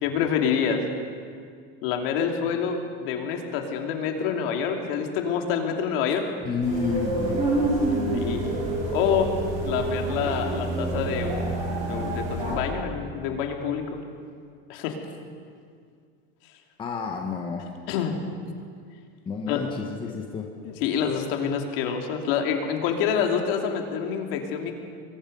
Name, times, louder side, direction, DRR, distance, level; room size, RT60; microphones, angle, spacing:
voice 1, 0.0-0.8 1.8-6.3 8.1-8.5 8.9-9.3 9.6-11.6 11.8-13.8 14.7-15.0 17.9-18.2 19.5-19.6 20.6-24.7, left 7 dB, 60° left, 3 dB, 2.9 m, -27 dB
voice 2, 6.4-8.5 16.8-17.7 19.3-20.5, left 5 dB, 15° left, 2 dB, 1.3 m, -31 dB
sound 1, 6.6-12.6, right 2 dB, 20° right, 5.5 m, -27 dB
28.0 x 22.5 x 5.5 m, 2.2 s
supercardioid pair, 175°, 32 cm